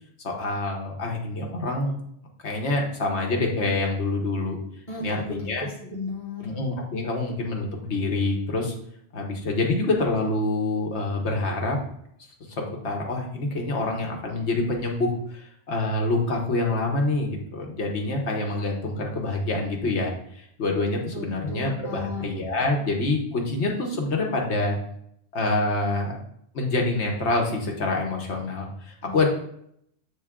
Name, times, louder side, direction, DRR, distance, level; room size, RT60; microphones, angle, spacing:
voice 1, 0.2-2.0 2.4-4.6 5.0-5.7 6.4-8.7 9.1-11.8 12.5-24.8 25.3-26.1 26.5-29.3, left 2 dB, 85° left, 1 dB, 1.4 m, -26 dB
voice 2, 4.9-5.2 5.6-6.5 21.1-22.3 29.0-29.2, left 3 dB, 45° left, -6 dB, 2.0 m, -35 dB
7.0 x 3.8 x 3.6 m, 0.71 s
omnidirectional pair, 1.1 m